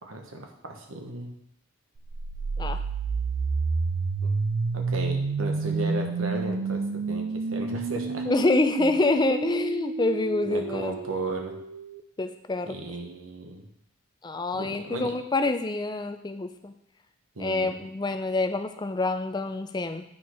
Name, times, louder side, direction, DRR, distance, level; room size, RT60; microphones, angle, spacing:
voice 1, 0.0-1.3 4.2-4.3 4.7-8.2 8.8-8.9 10.5-11.6 12.6-13.7 14.5-15.1 17.4-17.8, right 2 dB, 75° right, 3 dB, 1.2 m, -35 dB
sound 1, 2.0-12.0, right 4 dB, 60° right, 0.4 m, -30 dB
voice 2, 8.3-10.9 12.2-12.7 14.2-16.7 17.4-20.0, left 2 dB, 20° left, 7 dB, 0.4 m, -26 dB
8.6 x 4.4 x 4.8 m, 0.74 s
head